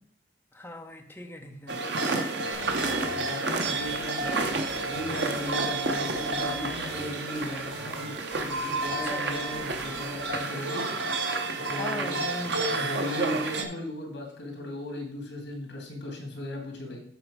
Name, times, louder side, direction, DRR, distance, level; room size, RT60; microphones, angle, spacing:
voice 1, 0.5-1.8 9.0-9.5 11.6-12.9, left 1 dB, 10° left, 0.7 m, -40 dB
sound 1, 1.7-13.7, right 3 dB, 70° right, 0.8 m, -30 dB
sound 2, 2.5-10.3, equal, 35° right, 2.5 m, -44 dB
voice 2, 3.1-4.3 4.8-10.9 11.5-12.3 12.7-17.0, left 1 dB, 75° left, 2.2 m, -37 dB
8.1 x 4.4 x 4.8 m
head